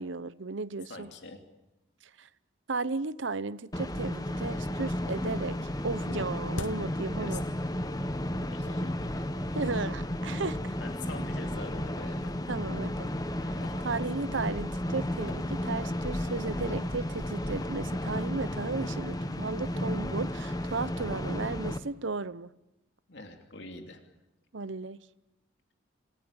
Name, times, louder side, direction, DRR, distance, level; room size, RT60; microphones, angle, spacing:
voice 1, 0.0-1.1 2.2-2.3 2.7-5.6 5.8-7.4 9.5-10.8 12.5-13.1 13.4-22.5 24.5-25.0, right 3 dB, 75° right, 0.8 m, -35 dB
voice 2, 0.9-1.4 7.2-7.4 8.5-9.2 10.8-12.3 23.1-24.0, left 2 dB, 65° left, 2.8 m, -44 dB
sound 1, 3.7-21.8, left 1 dB, 20° left, 1.1 m, -33 dB
sound 2, 3.8-3.9 4.2-4.8 5.1-8.0 8.3-8.4 9.2-9.3 9.8-9.9 10.2-10.4 11.1-11.6 12.0-14.6 15.0-18.9, left 2 dB, 85° left, 1.1 m, -48 dB
27.5 x 17.0 x 8.8 m
head